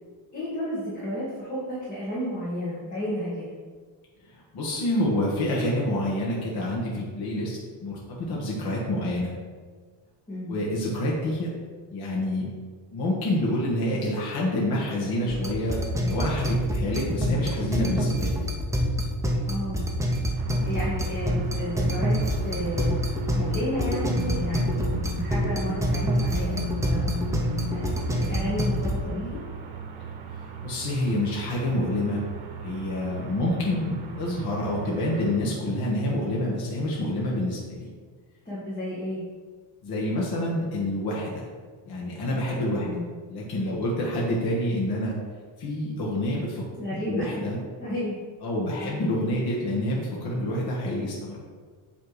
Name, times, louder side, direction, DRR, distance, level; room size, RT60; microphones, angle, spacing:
voice 1, 0.3-3.4 10.3-10.5 19.4-19.8 20.6-22.9 23.3-27.1 27.7-29.4 33.3-33.6 38.4-39.2 42.7-43.0 46.8-47.4 47.8-48.2 48.7-49.0, left 1 dB, 15° left, -9 dB, 1.7 m, -32 dB
voice 2, 4.3-9.3 10.5-11.5 11.9-12.5 12.9-18.3 30.4-32.2 32.6-37.9 39.8-41.5 41.8-42.9 43.3-45.1 45.6-46.6 47.1-47.6 48.4-51.4, left 1 dB, 50° left, -4 dB, 1.4 m, -27 dB
sound 1, 15.3-29.0, equal, 5° right, 0.4 m, -26 dB
sound 2, 20.4-35.4, right 6 dB, 85° right, 0.8 m, -39 dB
7.9 x 3.4 x 4.8 m, 1.5 s
cardioid pair, 155°, 48 cm